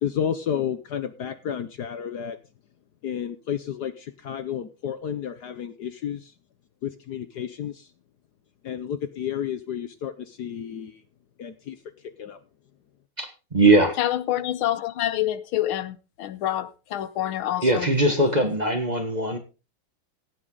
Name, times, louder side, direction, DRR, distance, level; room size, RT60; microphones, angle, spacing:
voice 1, 0.0-2.4 3.0-6.3 6.8-7.9 8.6-11.0 11.4-11.8 12.0-12.4, left 9 dB, 60° left, 1.2 m, -31 dB
voice 2, 13.2-14.0 17.6-19.4, right 2 dB, 25° right, 1.4 m, -20 dB
voice 3, 14.0-17.9, left 12 dB, 80° left, 1.7 m, -27 dB
16.0 x 9.1 x 3.9 m
omnidirectional pair, 2.3 m